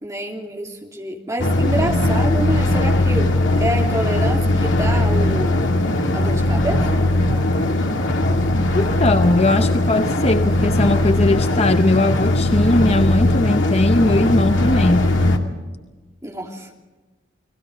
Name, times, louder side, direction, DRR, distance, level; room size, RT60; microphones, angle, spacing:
voice 1, 0.0-3.3 3.5-5.7 6.1-7.5 16.2-16.7, right 1 dB, 15° right, 1 dB, 2.8 m, -27 dB
sound 1, 1.4-15.4, left 1 dB, 75° left, 2.3 m, -19 dB
voice 2, 8.7-15.1, left 2 dB, 30° left, 8 dB, 0.7 m, -19 dB
29.5 x 20.0 x 5.1 m, 1.3 s
head